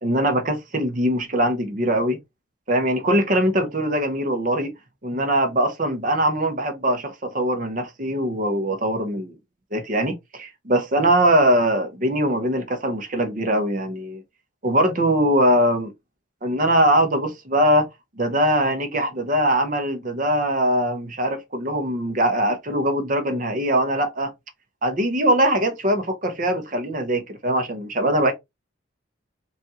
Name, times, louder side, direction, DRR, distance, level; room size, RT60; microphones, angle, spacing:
voice 1, 0.0-2.2 2.7-4.7 5.0-9.3 9.7-14.2 14.6-15.9 16.4-17.9 18.2-24.3 24.8-28.3, right 1 dB, 40° right, 0.8 m, -21 dB
5.1 x 2.4 x 2.9 m
head